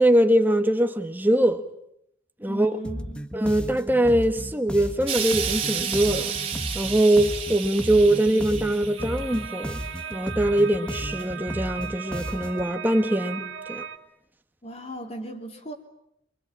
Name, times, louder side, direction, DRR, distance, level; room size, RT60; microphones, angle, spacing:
voice 1, 0.0-1.6 2.4-2.7 3.3-6.3 6.7-9.8 10.1-13.9, right 1 dB, 10° right, 1.6 m, -22 dB
voice 2, 2.5-3.3 14.6-15.7, right 1 dB, 35° left, 3.5 m, -37 dB
sound 1, 2.8-12.7, equal, 5° left, 1.3 m, -35 dB
Explosion, 5.1-10.4 11.2-11.3, right 7 dB, 30° right, 3.4 m, -32 dB
sound 2, 9.0-14.0, right 7 dB, 85° right, 2.9 m, -37 dB
28.0 x 24.0 x 8.6 m
head